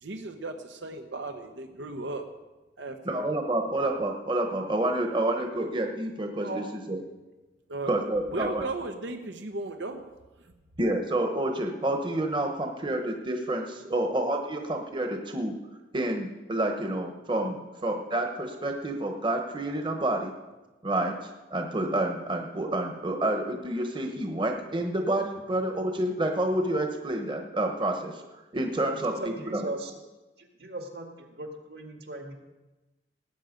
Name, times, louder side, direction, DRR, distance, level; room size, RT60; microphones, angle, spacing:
voice 1, 0.0-2.2 2.8-3.3 7.7-7.9 8.3-10.0, right 2 dB, 85° right, 5 dB, 1.0 m, -36 dB
voice 2, 3.0-7.0 7.9-8.6 10.8-15.5 15.9-20.3 20.8-28.2 28.5-29.6, right 1 dB, 25° right, 4 dB, 1.1 m, -29 dB
voice 3, 6.4-6.7 28.9-29.9 30.4-32.3, right 1 dB, 65° right, 3 dB, 1.9 m, -38 dB
18.5 x 8.9 x 5.2 m, 1.1 s
head